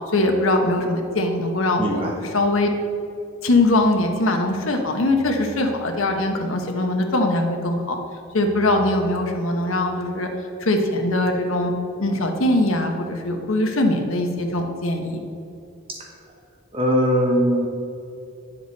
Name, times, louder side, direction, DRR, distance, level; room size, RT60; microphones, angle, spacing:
voice 1, 0.1-1.9 2.3-2.7 3.4-8.0 8.3-10.3 10.6-11.7 12.0-15.2, left 2 dB, 80° left, 3 dB, 1.1 m, -21 dB
voice 2, 1.8-2.2 15.9-16.1 16.7-17.7, equal, 25° right, 0 dB, 1.0 m, -21 dB
9.7 x 7.2 x 4.1 m, 2.6 s
head